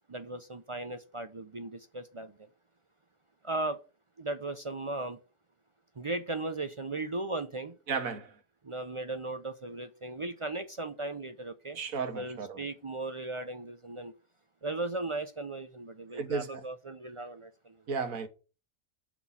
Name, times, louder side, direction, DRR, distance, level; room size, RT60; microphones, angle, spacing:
voice 1, 0.1-2.4 3.4-3.8 4.2-5.2 6.0-7.8 8.6-11.8 12.1-14.1 14.6-17.8, right 2 dB, 45° right, 0.4 m, -37 dB
voice 2, 7.9-8.4 11.7-12.6 16.1-16.6 17.9-18.3, right 5 dB, 80° right, 1.7 m, -34 dB
6.1 x 6.1 x 7.3 m
omnidirectional pair, 1.4 m